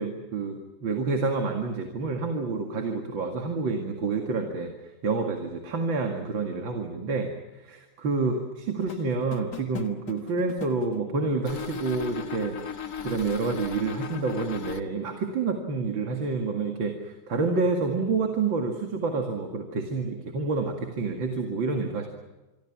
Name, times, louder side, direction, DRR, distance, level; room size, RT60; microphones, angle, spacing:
voice 1, 0.0-4.7 5.0-7.3 7.6-12.6 13.0-22.1, right 4 dB, 65° right, 4 dB, 2.8 m, -28 dB
sound 1, 8.8-11.0 11.4-14.8, left 7 dB, 50° left, 1.8 m, -37 dB
27.0 x 24.0 x 6.1 m, 1.1 s
omnidirectional pair, 2.3 m